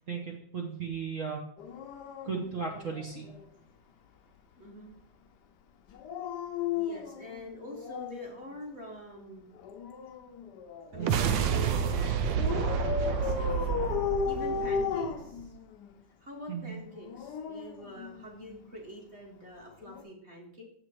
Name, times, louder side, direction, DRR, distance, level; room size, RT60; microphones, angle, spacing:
voice 1, 0.1-1.5 2.2-3.3 11.0-11.3 16.5-16.7, right 6 dB, 55° right, 0 dB, 1.0 m, -36 dB
Dog, 1.6-3.4 5.9-8.3 9.6-11.2 12.4-15.9 16.9-18.6 19.8-20.0, left 7 dB, 70° left, 1.1 m, -35 dB
voice 2, 4.6-4.9 6.8-9.5 10.9-13.8 14.2-15.5 16.2-20.6, left 1 dB, 35° right, -1 dB, 1.7 m, -45 dB
sound 1, 10.9-15.5, right 7 dB, 75° right, 1.3 m, -29 dB
7.5 x 5.1 x 4.6 m, 0.66 s
omnidirectional pair, 2.1 m